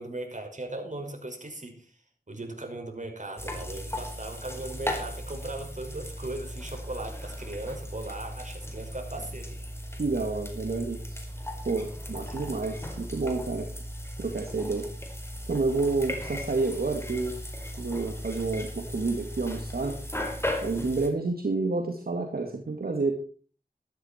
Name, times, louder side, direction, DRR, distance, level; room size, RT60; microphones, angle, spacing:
voice 1, 0.0-1.9 2.3-9.6 12.3-12.5, right 2 dB, 50° right, 3 dB, 5.5 m, -38 dB
sound 1, 3.4-21.1, equal, 15° left, 4.5 m, -37 dB
voice 2, 10.0-11.2 11.7-13.7 14.2-14.9 15.5-17.4 17.8-20.0 20.6-23.1, right 3 dB, 75° right, 3 dB, 2.1 m, -29 dB
14.0 x 13.0 x 4.4 m, 0.40 s
cardioid pair, 40°, 16 cm